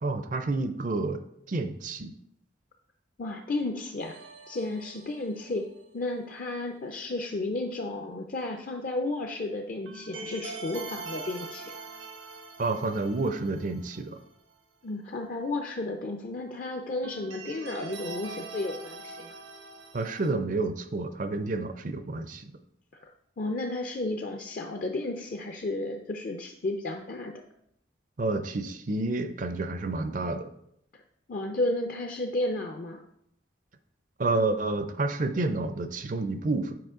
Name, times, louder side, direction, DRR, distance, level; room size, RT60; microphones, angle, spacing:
voice 1, 0.0-2.1 12.6-14.2 19.9-22.5 28.2-30.5 34.2-36.7, right 3 dB, 40° right, 10 dB, 0.4 m, -29 dB
voice 2, 3.2-4.2 4.5-5.6 5.9-11.6 14.8-19.3 23.0-23.1 23.4-27.3 30.9-31.0 31.3-33.0, left 2 dB, 45° left, 4 dB, 0.5 m, -33 dB
sound 1, 4.0-5.8 9.8-14.2 14.5-14.6 17.0-20.3, right 3 dB, 85° right, 0.9 m, -43 dB
7.8 x 5.0 x 3.7 m, 0.74 s
head